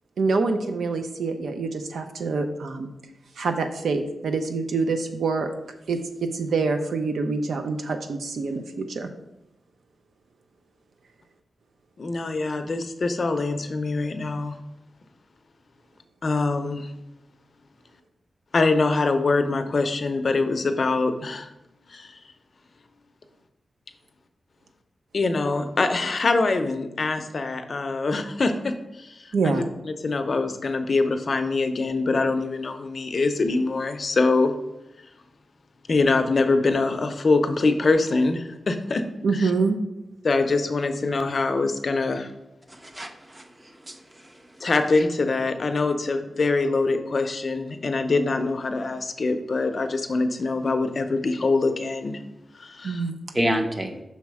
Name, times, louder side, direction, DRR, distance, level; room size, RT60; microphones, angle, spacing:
voice 1, 0.2-2.9 3.4-5.5 5.9-9.1 29.3-29.6 39.2-39.8 52.8-53.1, right 4 dB, 90° right, 6 dB, 0.6 m, -26 dB
voice 2, 12.0-14.6 16.2-16.9 18.5-21.5 21.9-22.1 25.1-34.5 35.9-39.0 39.4-39.5 40.2-42.3 44.6-52.2 52.5-53.0, left 3 dB, 45° left, 7 dB, 0.5 m, -24 dB
voice 3, 42.7-44.3 53.3-53.9, equal, 20° right, 5 dB, 0.7 m, -29 dB
5.8 x 4.1 x 4.7 m, 0.89 s
wide cardioid pair, 120°, 0 cm